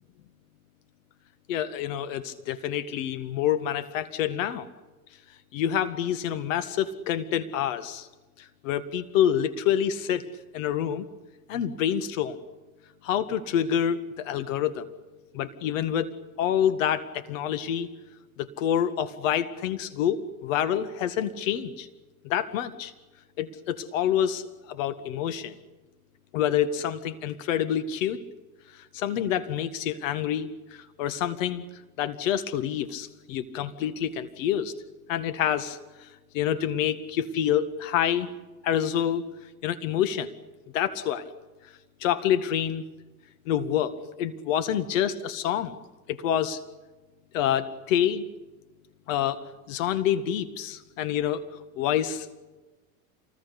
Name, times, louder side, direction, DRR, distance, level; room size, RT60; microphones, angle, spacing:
voice 1, 1.5-4.7 5.5-8.1 8.6-10.2 10.5-11.1 11.5-12.4 13.0-14.8 15.3-17.9 18.4-21.9 22.2-22.9 23.4-25.5 26.3-28.2 28.9-30.5 31.0-31.6 32.0-34.7 35.1-36.1 36.3-38.3 38.6-39.2 39.6-40.3 40.7-41.3 42.0-42.8 43.5-45.8 46.1-46.6 47.3-48.3 49.1-49.4 49.7-51.5 51.8-52.3, left 10 dB, 60° left, 11 dB, 1.9 m, -27 dB
27.5 x 20.5 x 8.4 m, 1.2 s
hypercardioid pair, 90°, 43 cm